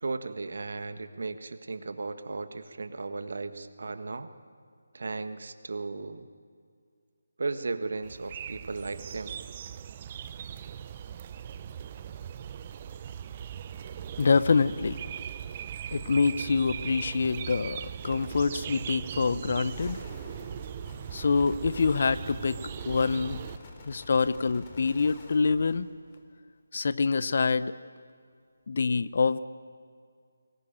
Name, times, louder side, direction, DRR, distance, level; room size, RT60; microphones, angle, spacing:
voice 1, 0.0-4.3 4.9-6.3 7.4-9.3, right 3 dB, 60° right, 10 dB, 1.6 m, -35 dB
sound 1, 8.0-23.6, right 9 dB, 30° right, 0.7 m, -39 dB
voice 2, 14.2-15.0 15.9-20.0 21.1-23.4 23.9-25.9 26.7-27.7 28.7-29.4, left 4 dB, 50° left, 15 dB, 0.8 m, -26 dB
sound 2, 19.6-26.3, left 3 dB, 25° left, 3.8 m, -48 dB
23.5 x 21.0 x 9.0 m, 2.1 s
figure-of-eight pair, 155°, 0 cm